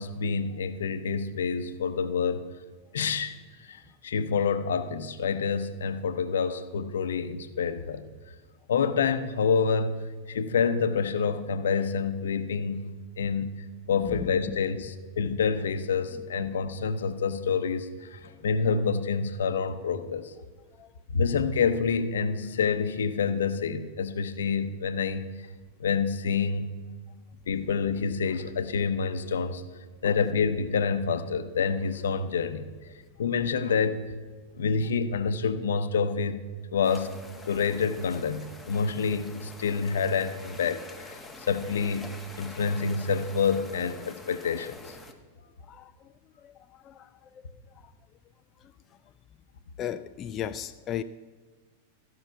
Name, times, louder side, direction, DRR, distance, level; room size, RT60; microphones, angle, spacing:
voice 1, 0.0-2.4 2.9-3.3 3.7-3.8 4.0-8.1 8.7-12.9 13.2-13.5 13.9-20.3 21.1-25.3 25.8-26.7 27.5-29.6 30.0-32.7 33.2-34.1 34.5-36.4 36.7-37.2 37.5-41.2 41.5-44.9, left 5 dB, 75° left, 0.7 m, -27 dB
voice 2, 14.0-14.6 20.8-20.9 30.0-30.1 45.7-45.9 46.4-46.6 46.8-47.1 49.8-51.0, left 10 dB, 35° left, 0.4 m, -35 dB
sound 1, 36.8-45.1, left 2 dB, 10° left, 1.2 m, -46 dB
14.5 x 5.7 x 5.7 m
hypercardioid pair, 100°, 0 cm